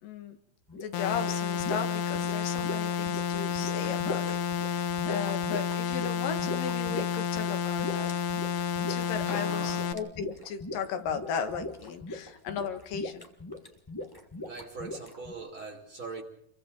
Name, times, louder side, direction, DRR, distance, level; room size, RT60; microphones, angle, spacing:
voice 1, 0.0-0.4 0.7-8.1 8.9-13.3, left 6 dB, 90° left, 7 dB, 3.3 m, -36 dB
sound 1, 0.7-15.3, left 2 dB, 15° left, 0.7 m, -40 dB
sound 2, 0.9-9.9, left 8 dB, 70° left, 2.2 m, -30 dB
voice 2, 9.2-9.8 14.4-16.2, right 3 dB, 40° right, 0 dB, 3.1 m, -41 dB
29.0 x 22.5 x 4.0 m, 0.72 s
omnidirectional pair, 3.8 m